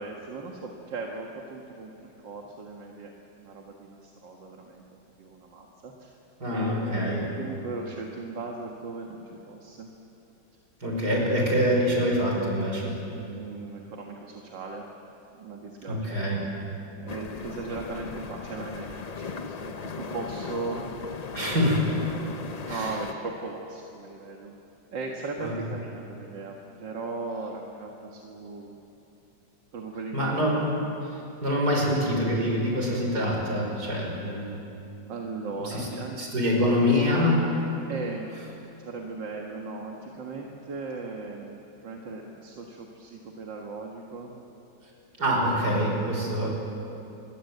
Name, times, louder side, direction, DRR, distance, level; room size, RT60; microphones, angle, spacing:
voice 1, 0.0-3.1 3.4-6.1 6.5-9.9 13.0-14.9 15.4-16.3 16.9-20.9 22.7-24.5 24.9-28.8 29.7-30.6 35.1-36.6 36.9-37.0 37.9-38.3 38.8-44.3 46.4-46.5, right 3 dB, 80° right, 0 dB, 2.4 m, -38 dB
voice 2, 6.4-7.2 10.8-12.9 15.9-16.4 21.3-21.8 22.7-22.9 25.4-25.5 30.1-30.7 31.0-34.6 35.5-35.9 36.2-37.6 45.2-46.5, equal, 60° right, -1 dB, 6.1 m, -25 dB
sound 1, 17.1-23.1, left 5 dB, 50° left, 0.4 m, -37 dB
26.5 x 21.5 x 8.0 m, 3.0 s
omnidirectional pair, 1.9 m